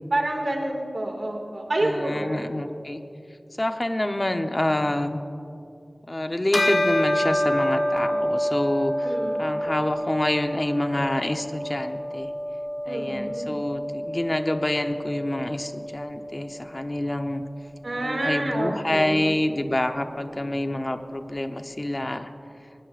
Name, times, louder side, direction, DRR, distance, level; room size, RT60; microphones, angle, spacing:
voice 1, 0.1-2.4 9.0-9.5 12.9-13.6 17.8-19.4, right 1 dB, 75° right, 1 dB, 2.1 m, -28 dB
voice 2, 1.8-3.0 3.6-5.2 6.1-9.0 9.4-12.3 12.9-17.4 18.0-22.3, left 1 dB, 35° left, 6 dB, 0.9 m, -27 dB
Bell, 6.5-16.2, equal, 70° left, 1.3 m, -28 dB
22.5 x 19.5 x 2.5 m, 2.6 s
wide cardioid pair, 65°, 0 cm